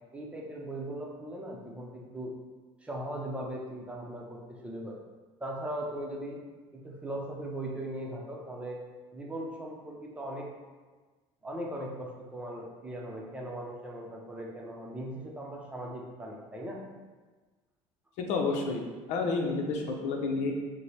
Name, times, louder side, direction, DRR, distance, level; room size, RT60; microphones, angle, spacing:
voice 1, 0.1-2.3 2.8-5.0 5.4-6.4 6.7-8.8 9.1-10.5 11.4-16.8, right 1 dB, 10° right, -2 dB, 0.8 m, -39 dB
voice 2, 18.2-18.8 19.1-20.5, left 4 dB, 75° left, 2 dB, 0.8 m, -30 dB
6.6 x 2.2 x 3.4 m, 1.3 s
cardioid pair, 125°, 12 cm